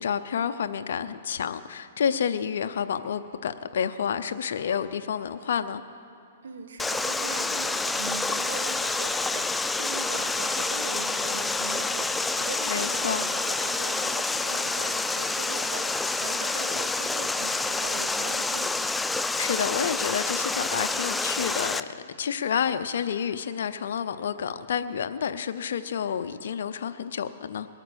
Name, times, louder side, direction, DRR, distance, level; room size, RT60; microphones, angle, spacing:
voice 1, 0.0-5.8 12.7-13.2 19.4-21.9 22.2-27.7, left 7 dB, 75° left, 9 dB, 0.7 m, -29 dB
voice 2, 6.4-18.9, right 5 dB, 85° right, 8 dB, 1.4 m, -40 dB
Water, 6.8-21.8, left 3 dB, 5° left, 0.3 m, -28 dB
21.0 x 9.1 x 6.4 m, 2.6 s
hypercardioid pair, 140°, 0 cm